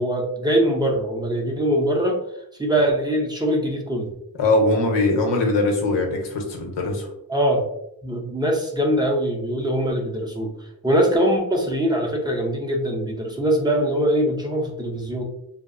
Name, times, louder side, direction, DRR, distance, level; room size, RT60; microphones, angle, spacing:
voice 1, 0.0-2.2 2.6-4.1 7.3-7.7 8.0-10.5 10.8-15.2, equal, 10° right, -1 dB, 0.5 m, -22 dB
voice 2, 4.4-7.1, left 2 dB, 80° left, 2 dB, 0.8 m, -21 dB
2.6 x 2.0 x 2.4 m, 0.79 s
cardioid pair, 80°, 43 cm